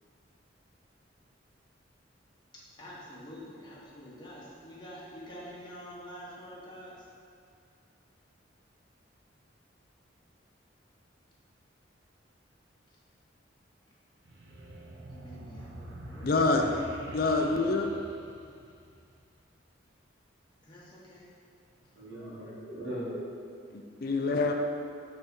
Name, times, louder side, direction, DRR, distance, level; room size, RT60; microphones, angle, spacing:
voice 1, 2.8-6.9 15.1-16.2 17.4-17.5 20.6-21.3, equal, 25° left, -6 dB, 1.1 m, -47 dB
sound 1, 14.2-19.2, right 1 dB, 70° right, 0.8 m, -46 dB
voice 2, 16.2-16.7 17.1-17.9 23.7-24.5, left 3 dB, 50° left, 3 dB, 0.5 m, -26 dB
voice 3, 21.9-23.6 24.1-24.5, equal, 85° right, -11 dB, 1.5 m, -40 dB
5.5 x 3.4 x 5.3 m, 2.4 s
head